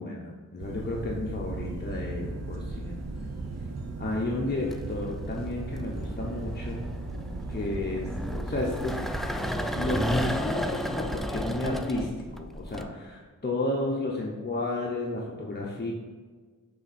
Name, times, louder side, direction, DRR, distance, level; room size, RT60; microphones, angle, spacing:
voice 1, 0.0-3.0 4.0-6.9 7.5-9.1 9.8-15.9, left 2 dB, 30° left, -3 dB, 0.9 m, -32 dB
sound 1, 0.6-10.4, right 2 dB, 50° right, 0.8 m, -37 dB
sound 2, 3.0-3.4 4.5-12.8, equal, ahead, 0.4 m, -33 dB
7.0 x 3.5 x 4.2 m, 1.5 s
wide cardioid pair, 75°, 33 cm